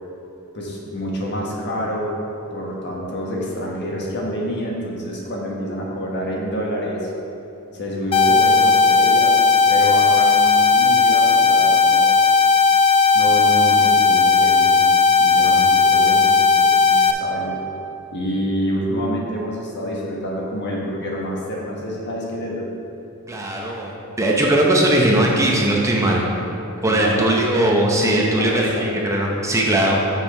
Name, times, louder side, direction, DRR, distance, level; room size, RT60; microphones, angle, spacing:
voice 1, 0.5-2.1 2.5-7.1 7.7-9.4 9.7-12.2 13.1-14.9 15.2-17.6 18.1-22.7 26.8-27.3 28.0-28.9, equal, 50° left, -3 dB, 1.4 m, -27 dB
sound 1, 8.1-17.1, left 5 dB, 25° left, 0.3 m, -15 dB
voice 2, 23.3-26.2 26.8-30.0, right 1 dB, 15° right, -2 dB, 0.6 m, -19 dB
6.6 x 6.3 x 4.8 m, 3.0 s
head